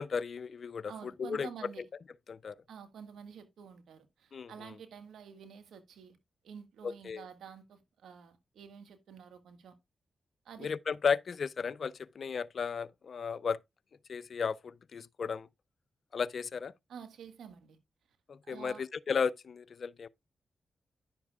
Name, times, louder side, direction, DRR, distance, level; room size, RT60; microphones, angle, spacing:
voice 1, 0.0-0.9 1.2-1.5 2.3-2.5 4.3-4.5 6.8-7.3 10.6-13.6 14.1-15.5 16.1-16.7 18.3-20.1, left 6 dB, 65° left, 0.5 m, -34 dB
voice 2, 0.9-1.8 2.7-6.2 6.4-9.7 10.4-10.7 16.9-17.8 18.4-18.8, right 7 dB, 85° right, 1.5 m, -49 dB
10.5 x 7.2 x 2.3 m
supercardioid pair, 45°, 0 cm